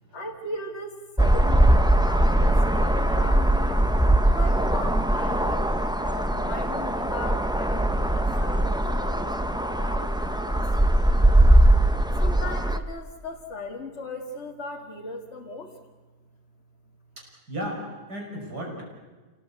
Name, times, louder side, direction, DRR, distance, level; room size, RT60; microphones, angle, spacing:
voice 1, 0.1-3.8 4.3-5.6 6.0-10.6 12.1-15.8, left 2 dB, 45° left, 0 dB, 2.1 m, -38 dB
sound 1, 1.2-12.8, right 1 dB, 5° right, 0.5 m, -21 dB
voice 2, 17.2-18.8, equal, 75° right, 0 dB, 6.3 m, -35 dB
28.0 x 17.5 x 8.2 m, 1.3 s
omnidirectional pair, 1.7 m